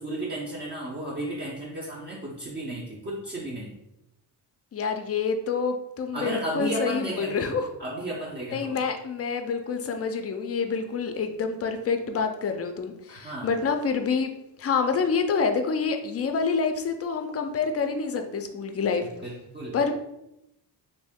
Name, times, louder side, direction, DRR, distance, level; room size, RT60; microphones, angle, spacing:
voice 1, 0.0-3.7 6.1-7.5 7.8-8.8 13.1-13.6 19.0-19.8, right 1 dB, 25° right, -4 dB, 0.6 m, -33 dB
voice 2, 4.7-7.7 8.5-14.3 14.6-19.0 19.7-20.0, left 5 dB, 35° left, 6 dB, 0.4 m, -27 dB
3.0 x 2.7 x 3.5 m, 0.86 s
wide cardioid pair, 120°, 41 cm